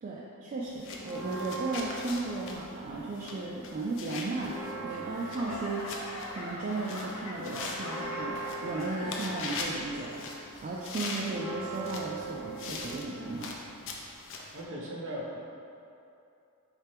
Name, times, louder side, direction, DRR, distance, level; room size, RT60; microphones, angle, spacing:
voice 1, 0.0-6.0 6.3-13.5, right 2 dB, 35° right, -5 dB, 0.3 m, -35 dB
sound 1, 0.7-14.6, left 3 dB, 60° left, 0.5 m, -42 dB
sound 2, 1.0-3.4 3.7-14.2, right 3 dB, 10° right, 0.7 m, -42 dB
Laughter / Clapping / Crowd, 4.9-9.7 10.0-10.5 11.1-11.2, left 1 dB, 90° left, 0.7 m, -41 dB
voice 2, 14.5-15.4, equal, 55° right, -2 dB, 0.7 m, -38 dB
4.3 x 3.3 x 3.4 m, 2.7 s
head